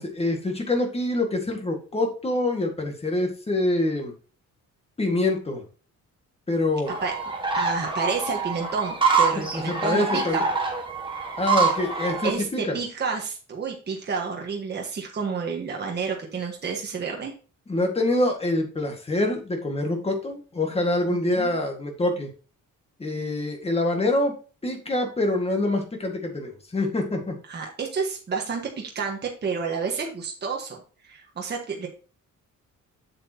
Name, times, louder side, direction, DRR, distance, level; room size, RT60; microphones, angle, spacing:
voice 1, 0.0-4.1 5.0-5.6 6.5-6.9 9.5-10.4 11.4-12.8 17.7-22.3 23.0-24.3 24.6-27.4, left 2 dB, 20° left, 3 dB, 1.8 m, -25 dB
sound 1, 6.9-12.3, right 4 dB, 15° right, 1.6 m, -25 dB
voice 2, 7.5-10.5 12.2-17.3 21.1-21.5 27.5-30.8 31.0-31.9, right 5 dB, 35° right, 1 dB, 1.4 m, -30 dB
7.7 x 7.6 x 2.9 m, 0.36 s
wide cardioid pair, 160°, 31 cm